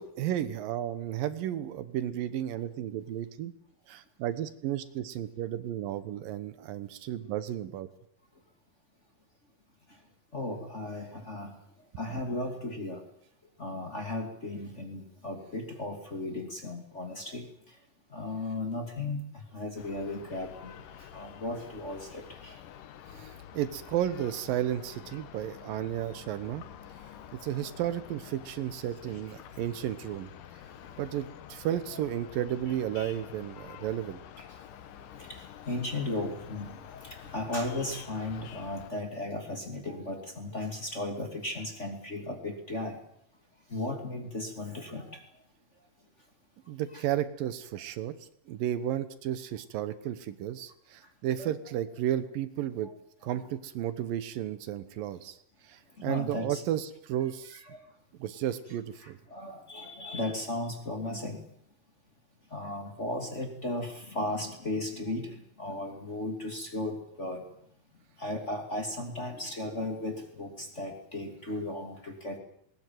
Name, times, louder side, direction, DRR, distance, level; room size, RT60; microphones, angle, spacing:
voice 1, 0.0-3.5 3.9-7.9 23.2-26.6 27.4-30.3 31.0-34.2 46.7-48.1 48.5-52.9 53.2-55.4 55.7-57.6 58.2-59.2, right 11 dB, 75° right, 13 dB, 2.7 m, -33 dB
voice 2, 10.3-11.5 12.0-13.0 13.6-17.4 18.1-20.8 21.1-22.6 29.0-29.1 31.9-32.0 34.4-34.5 35.2-43.0 43.7-45.2 46.9-47.0 51.4-51.6 56.0-56.6 59.0-61.4 62.5-67.4 68.2-72.4, left 2 dB, 20° left, 3 dB, 2.4 m, -36 dB
sound 1, 19.8-38.9, left 10 dB, 70° left, 2.7 m, -48 dB
20.0 x 19.5 x 9.3 m, 0.71 s
omnidirectional pair, 4.1 m